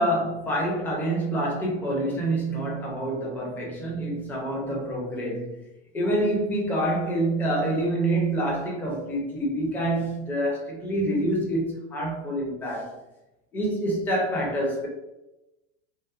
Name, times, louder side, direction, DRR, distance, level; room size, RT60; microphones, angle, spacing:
voice 1, 0.0-5.6 5.9-13.0 13.5-14.9, right 1 dB, 5° left, -3 dB, 0.4 m, -27 dB
2.7 x 2.0 x 2.3 m, 0.97 s
supercardioid pair, 135°, 32 cm